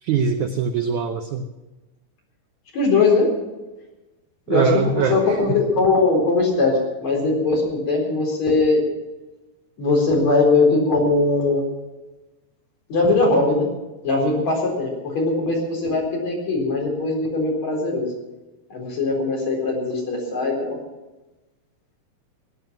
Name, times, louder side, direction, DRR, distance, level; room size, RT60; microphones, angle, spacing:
voice 1, 0.0-1.5 4.5-5.6, right 6 dB, 80° right, 6 dB, 1.7 m, -23 dB
voice 2, 2.7-3.3 4.5-8.8 9.8-11.6 12.9-13.7 14.0-18.1 18.7-20.8, left 3 dB, 45° left, -1 dB, 5.2 m, -20 dB
19.5 x 10.5 x 6.1 m, 1.1 s
omnidirectional pair, 4.5 m